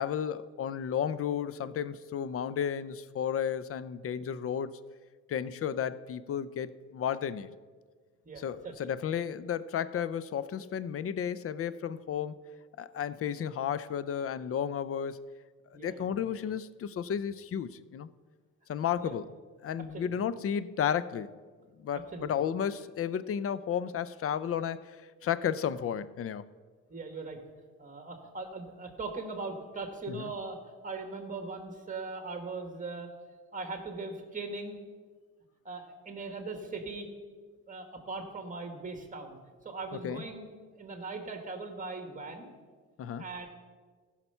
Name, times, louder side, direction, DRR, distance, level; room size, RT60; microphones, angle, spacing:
voice 1, 0.0-4.7 5.3-7.5 8.4-12.4 12.8-15.2 15.7-18.1 18.7-19.2 19.6-21.3 21.8-25.0 25.2-26.4 30.1-30.3 40.0-40.2 43.0-43.2, left 8 dB, 50° left, 16 dB, 0.5 m, -33 dB
voice 2, 8.2-8.9 15.7-16.1 19.0-19.2 19.9-20.1 21.9-22.3 26.9-27.4 27.8-30.6 30.8-33.1 33.5-34.8 35.6-37.1 37.7-39.4 39.6-40.5 40.8-42.5 43.2-43.5, right 3 dB, 25° right, 6 dB, 1.7 m, -40 dB
15.0 x 5.8 x 5.5 m, 1.5 s
cardioid pair, 90°, 30 cm